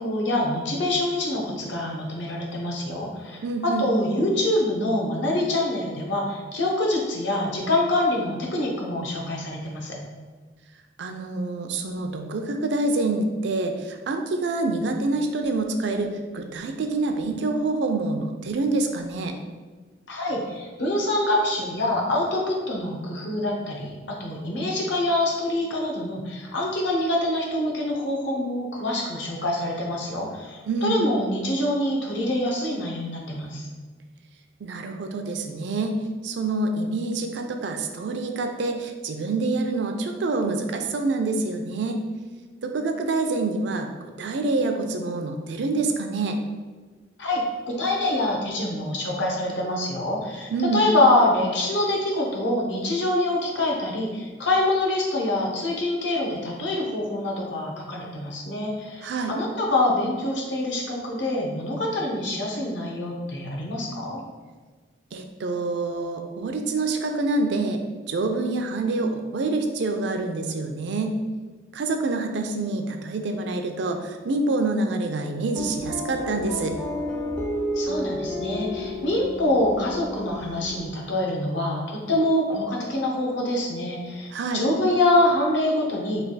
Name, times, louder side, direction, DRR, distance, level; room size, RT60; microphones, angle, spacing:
voice 1, 0.0-9.9 20.1-33.7 47.2-64.2 77.7-84.3 84.5-86.2, left 1 dB, 70° left, -1 dB, 0.8 m, -25 dB
voice 2, 3.4-3.8 11.0-19.3 30.7-31.0 34.6-36.0 36.2-42.0 42.6-46.4 50.5-50.9 59.0-59.3 65.1-67.8 68.1-71.2 71.7-76.7 84.3-84.6, right 3 dB, 65° right, 5 dB, 0.4 m, -26 dB
sound 1, 75.5-80.9, left 1 dB, 5° left, 0.3 m, -31 dB
3.3 x 2.3 x 3.9 m, 1.4 s
head